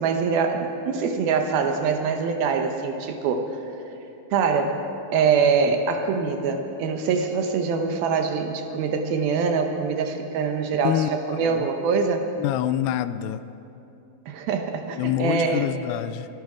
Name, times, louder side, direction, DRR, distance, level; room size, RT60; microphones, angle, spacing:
voice 1, 0.0-3.6 4.3-4.8 5.1-12.3 14.3-15.7, right 5 dB, 75° right, 5 dB, 2.5 m, -24 dB
voice 2, 10.8-11.7 12.4-13.4 14.9-16.3, left 12 dB, 85° left, 13 dB, 2.6 m, -26 dB
23.5 x 10.5 x 4.9 m, 2.8 s
omnidirectional pair, 4.8 m